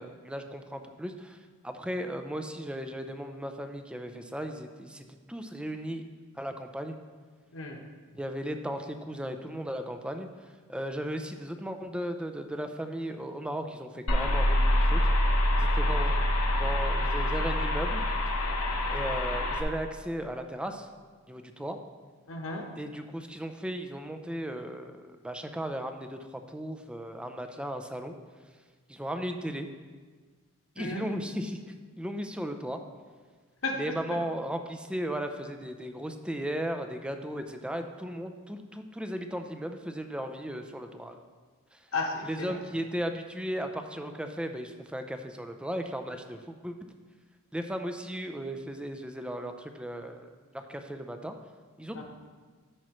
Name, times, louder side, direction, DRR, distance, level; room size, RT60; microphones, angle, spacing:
voice 1, 0.0-6.1 6.3-7.0 8.1-15.1 15.5-16.2 16.5-18.0 18.9-20.9 21.3-21.8 22.8-28.2 28.9-29.7 30.8-32.8 33.7-41.2 41.7-41.9 42.2-46.8 47.5-51.3 51.8-52.0, equal, 5° right, 6 dB, 0.5 m, -36 dB
voice 2, 7.5-7.8 22.3-22.7 30.8-31.1 33.6-33.8 41.9-42.6 51.9-52.0, left 3 dB, 65° left, 2 dB, 1.2 m, -33 dB
sound 1, 14.1-19.6, left 1 dB, 90° left, 1.0 m, -26 dB
13.5 x 6.1 x 3.1 m, 1.5 s
head